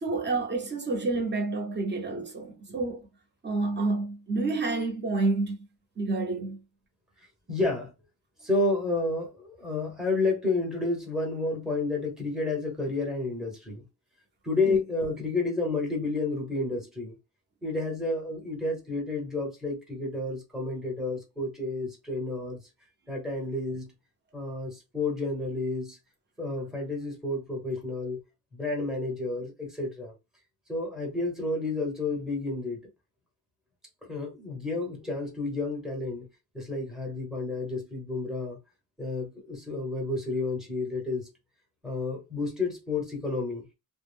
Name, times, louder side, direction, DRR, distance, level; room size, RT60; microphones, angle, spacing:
voice 1, 0.0-3.0 3.4-5.6 6.0-6.6 14.7-14.8, right 3 dB, 25° right, 0.8 m, -29 dB
voice 2, 7.5-7.9 8.4-13.8 14.4-17.1 17.6-22.6 23.1-23.9 24.3-26.0 26.4-28.2 28.5-30.1 30.7-32.8 34.1-36.3 36.5-38.6 39.0-41.3 41.8-43.6, left 3 dB, ahead, 1.0 m, -30 dB
2.4 x 2.1 x 3.3 m
cardioid pair, 135°, 41 cm